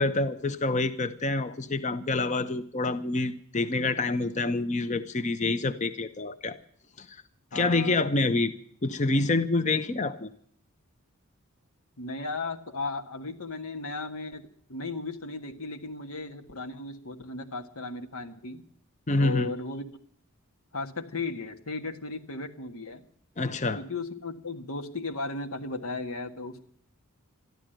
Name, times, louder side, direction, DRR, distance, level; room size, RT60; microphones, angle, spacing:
voice 1, 0.0-6.6 7.0-7.1 7.5-8.5 8.8-10.3 19.1-19.5 23.4-23.8, left 2 dB, 35° left, 11 dB, 0.7 m, -27 dB
voice 2, 7.5-8.0 12.0-18.6 19.2-19.8 20.7-23.0 23.7-26.6, left 3 dB, 90° left, 5 dB, 1.6 m, -36 dB
13.5 x 11.5 x 9.0 m, 0.62 s
head